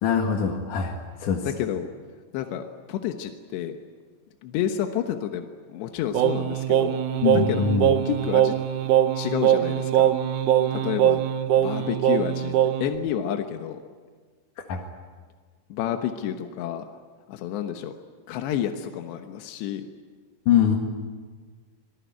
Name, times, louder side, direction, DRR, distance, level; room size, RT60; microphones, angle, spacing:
voice 1, 0.0-1.0 1.2-1.5 7.2-7.9 14.7-14.8 20.5-20.8, left 7 dB, 55° left, 1 dB, 3.0 m, -22 dB
voice 2, 1.4-1.9 2.3-3.8 4.4-7.0 7.3-8.5 9.1-10.1 10.7-11.2 11.6-12.6 12.8-13.8 15.7-16.9 17.3-17.9 18.3-19.9, left 10 dB, 85° left, 5 dB, 3.4 m, -30 dB
Singing, 6.1-13.0, right 10 dB, 75° right, 1.8 m, -22 dB
27.0 x 20.0 x 9.3 m, 1.5 s
omnidirectional pair, 4.9 m